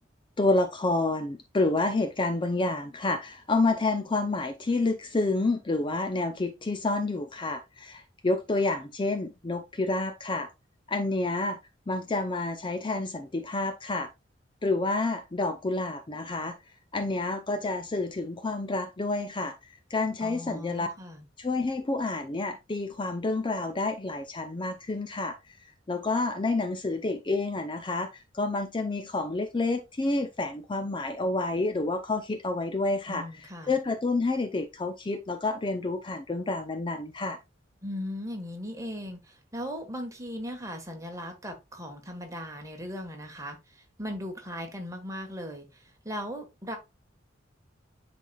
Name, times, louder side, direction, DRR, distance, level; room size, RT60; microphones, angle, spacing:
voice 1, 0.4-10.5 10.9-11.6 11.9-14.1 14.6-16.6 16.9-19.5 19.9-20.9 21.4-25.4 25.9-28.1 28.3-33.3 33.7-37.4, left 2 dB, 25° left, 0.5 m, -29 dB
voice 2, 20.2-21.3 33.1-33.7 37.8-46.8, equal, 15° right, 1.4 m, -38 dB
10.5 x 4.1 x 2.3 m
head